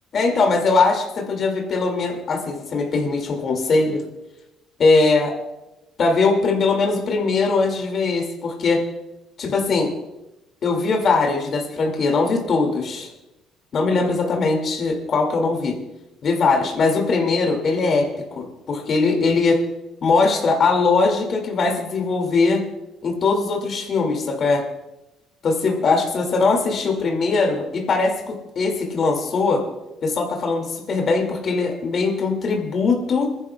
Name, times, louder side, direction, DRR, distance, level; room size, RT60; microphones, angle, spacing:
voice 1, 0.1-4.0 4.8-5.3 6.0-8.8 9.4-9.9 10.6-13.1 13.7-15.8 16.2-19.6 20.0-22.6 23.0-24.6 25.4-29.6 30.0-33.3, left 3 dB, 50° left, 2 dB, 2.2 m, -20 dB
27.5 x 11.0 x 2.3 m, 0.97 s
cardioid pair, 105°, 0 cm